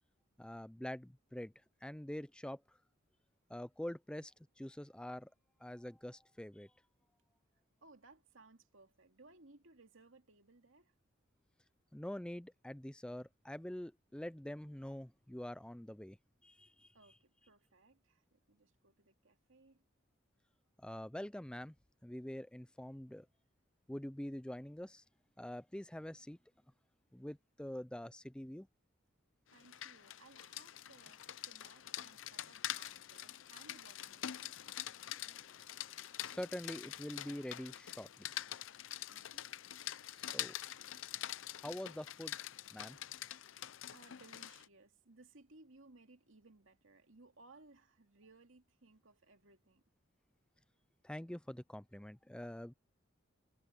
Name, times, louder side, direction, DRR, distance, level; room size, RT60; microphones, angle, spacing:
voice 1, 0.4-1.5 1.8-2.8 3.5-5.3 5.6-6.7 11.9-16.2 16.4-16.9 20.8-21.7 22.0-23.3 23.9-25.0 25.4-26.4 27.1-28.7 35.2-35.4 36.2-38.3 40.1-40.6 41.6-42.4 42.7-43.0 51.0-52.7, left 1 dB, 5° left, 0.4 m, -45 dB
voice 2, 7.8-10.9 16.9-19.9 29.5-35.0 39.1-39.5 43.9-49.8, right 3 dB, 80° right, 2.5 m, -63 dB
Rain, 29.5-44.7, left 12 dB, 70° left, 0.6 m, -45 dB
head